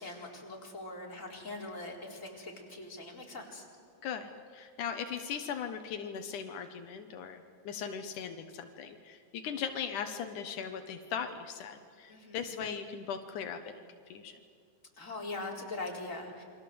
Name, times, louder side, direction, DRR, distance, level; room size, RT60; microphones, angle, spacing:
voice 1, 0.0-3.7 12.1-12.4 15.0-16.4, left 2 dB, 25° left, -1 dB, 4.5 m, -42 dB
voice 2, 4.0-13.7 14.1-14.4, left 7 dB, 80° left, 7 dB, 2.7 m, -39 dB
28.5 x 24.5 x 7.9 m, 2.3 s
omnidirectional pair, 3.5 m